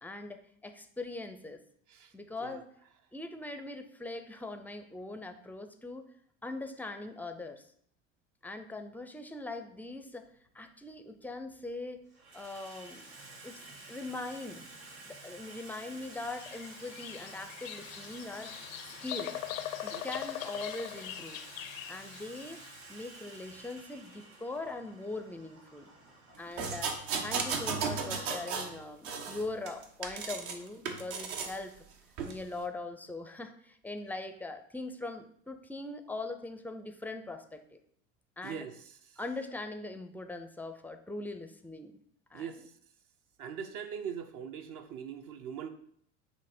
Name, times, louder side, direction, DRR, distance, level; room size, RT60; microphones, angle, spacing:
voice 1, 0.0-1.6 2.1-2.7 3.1-6.1 6.4-7.7 8.4-10.3 10.5-12.0 12.3-13.1 13.4-13.6 13.9-14.6 15.0-18.5 19.0-19.4 19.8-21.4 21.9-22.6 22.9-25.9 26.4-31.8 32.2-37.8 38.4-38.7 39.2-42.0 42.3-42.5, left 2 dB, 5° left, 7 dB, 0.4 m, -41 dB
Water tap faucet / Sink (filling or washing), 10.2-10.3 11.2-11.6 11.9-29.5, right 2 dB, 85° right, 1.5 m, -51 dB
Bird vocalization bird call bird song, 16.1-22.8, left 12 dB, 80° left, 0.6 m, -41 dB
sound 1, 26.6-28.7 29.0-30.6 30.9-31.6 32.2-32.3, right 5 dB, 65° right, 1.1 m, -35 dB
voice 2, 38.4-39.2 42.3-42.7 43.4-45.7, right 7 dB, 50° right, 8 dB, 0.7 m, -41 dB
7.6 x 2.9 x 4.3 m, 0.66 s
hypercardioid pair, 90°, 40 cm